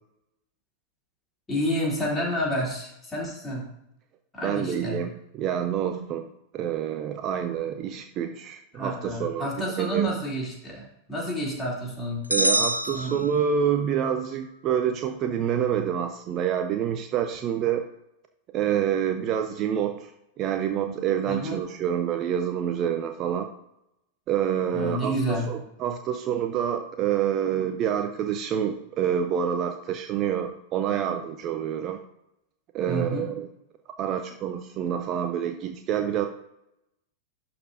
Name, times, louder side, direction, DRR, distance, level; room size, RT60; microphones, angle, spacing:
voice 1, 1.5-3.7 4.3-5.0 8.7-12.2 12.9-13.2 21.3-21.6 24.7-25.5 32.9-33.3, equal, 15° left, -4 dB, 3.2 m, -29 dB
voice 2, 4.4-6.3 6.5-9.5 9.8-10.1 12.3-17.9 18.5-20.1 20.4-23.5 24.3-32.0 32.7-33.5 34.0-36.3, right 9 dB, 35° right, 7 dB, 0.6 m, -27 dB
sound 1, 12.3-13.9, right 1 dB, 85° right, 0.4 m, -26 dB
11.5 x 4.3 x 3.9 m, 0.83 s
figure-of-eight pair, 90°, 0 cm